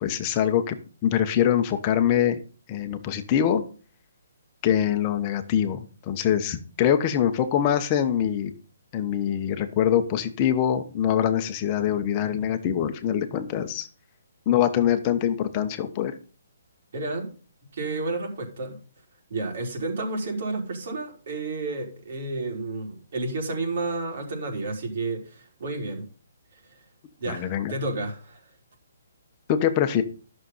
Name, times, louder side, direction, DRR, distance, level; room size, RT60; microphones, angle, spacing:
voice 1, 0.0-2.4 2.7-3.6 4.6-8.5 8.9-13.9 14.5-16.1 27.3-27.7 29.5-30.0, left 9 dB, 20° left, 8 dB, 1.1 m, -24 dB
voice 2, 16.9-17.3 17.7-18.8 19.3-26.1 27.2-28.4, right 2 dB, 50° right, 1 dB, 4.3 m, -31 dB
12.5 x 6.6 x 5.7 m, 0.37 s
hypercardioid pair, 170°, 0 cm